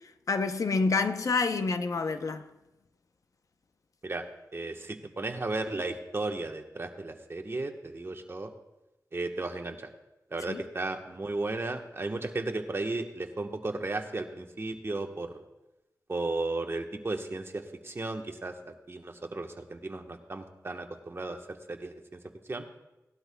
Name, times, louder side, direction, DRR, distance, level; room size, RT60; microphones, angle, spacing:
voice 1, 0.3-2.5 10.5-10.6, left 4 dB, 60° left, 0.7 m, -28 dB
voice 2, 4.5-8.5 9.1-9.9 10.3-15.4 16.1-22.2 22.5-22.6, right 2 dB, 40° right, 1.2 m, -35 dB
18.0 x 12.0 x 2.3 m
cardioid pair, 70°, 6 cm